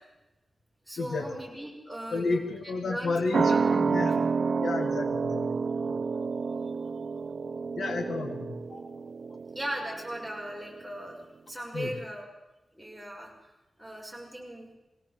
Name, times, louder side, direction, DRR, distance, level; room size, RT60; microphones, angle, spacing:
voice 1, 0.9-4.2 8.7-8.8 9.5-11.2 11.5-12.3 12.7-13.3 13.8-14.7, right 1 dB, ahead, -3 dB, 6.6 m, -38 dB
voice 2, 2.1-4.3 4.6-5.6 7.8-8.6 11.7-11.9, left 3 dB, 80° left, 5 dB, 2.2 m, -31 dB
sound 1, 3.3-10.4 10.7-10.8, right 5 dB, 60° right, 0.6 m, -29 dB
22.5 x 16.5 x 7.7 m, 1.0 s
wide cardioid pair, 125°, 0 cm